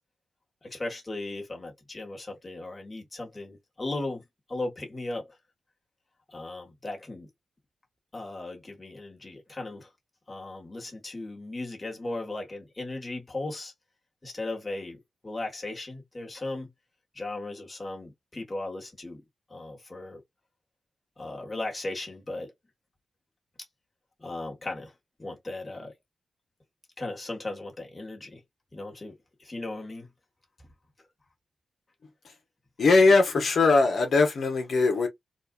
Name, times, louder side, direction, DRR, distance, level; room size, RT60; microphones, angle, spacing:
voice 1, 0.6-4.2 4.5-5.4 6.3-7.3 8.1-9.9 10.3-13.7 14.2-16.7 17.1-19.2 19.5-20.2 21.2-22.5 24.2-24.9 25.2-25.9 27.0-28.4 28.7-30.1, left 2 dB, 25° left, 1.5 m, -37 dB
voice 2, 32.8-35.1, left 3 dB, 65° left, 1.0 m, -20 dB
4.1 x 2.5 x 2.4 m
wide cardioid pair, 100°, 0 cm